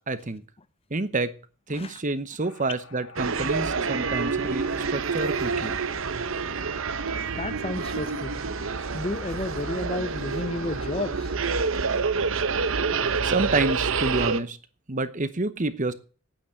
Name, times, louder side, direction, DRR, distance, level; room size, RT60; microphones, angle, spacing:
voice 1, 0.1-0.4 0.9-1.3 1.7-5.8 13.2-14.6 14.9-15.9, right 2 dB, 35° right, 0.9 m, -28 dB
sound 1, 2.4-11.2, left 4 dB, 75° left, 2.9 m, -49 dB
sound 2, 3.2-14.4, right 5 dB, 60° right, 0.8 m, -27 dB
voice 2, 7.3-8.4 8.9-11.3, left 2 dB, 25° left, 0.8 m, -32 dB
9.3 x 9.2 x 8.6 m
head